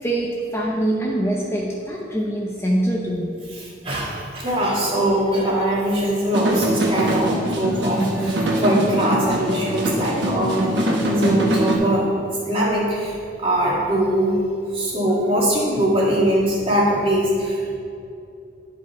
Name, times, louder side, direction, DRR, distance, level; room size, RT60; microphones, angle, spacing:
voice 1, 0.0-3.3, right 1 dB, 15° left, -3 dB, 0.6 m, -24 dB
voice 2, 3.5-10.7 11.0-12.1 12.5-14.4 14.7-17.8, right 1 dB, 30° right, -5 dB, 1.8 m, -21 dB
sound 1, 6.3-11.8, right 1 dB, 70° right, 1.1 m, -23 dB
10.5 x 5.0 x 4.1 m, 2.6 s
head